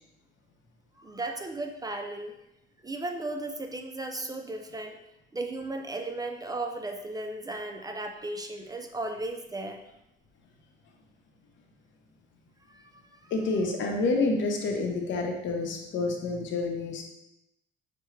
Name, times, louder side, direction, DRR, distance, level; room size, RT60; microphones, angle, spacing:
voice 1, 1.0-2.3 2.8-5.0 5.3-9.8 12.7-13.3, right 2 dB, 20° right, 4 dB, 0.4 m, -35 dB
voice 2, 13.3-17.0, left 3 dB, 75° left, 2 dB, 0.8 m, -28 dB
5.9 x 2.2 x 3.1 m, 0.86 s
cardioid pair, 90°, 20 cm